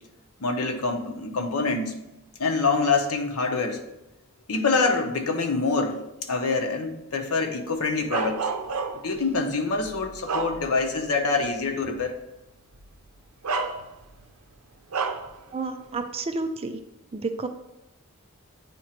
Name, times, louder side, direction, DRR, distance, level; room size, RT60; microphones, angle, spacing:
voice 1, 0.4-2.0 2.4-3.8 4.5-6.0 6.3-8.5 9.0-12.2, left 4 dB, 85° left, 4 dB, 0.9 m, -25 dB
Bark, 8.1-9.2 9.8-11.0 11.5-11.6 12.7-12.9 13.4-14.2 14.9-15.3, right 4 dB, 90° right, 0.6 m, -30 dB
voice 2, 15.5-16.8 17.1-17.5, right 3 dB, 25° right, 8 dB, 0.4 m, -30 dB
8.9 x 3.0 x 4.3 m, 0.93 s
head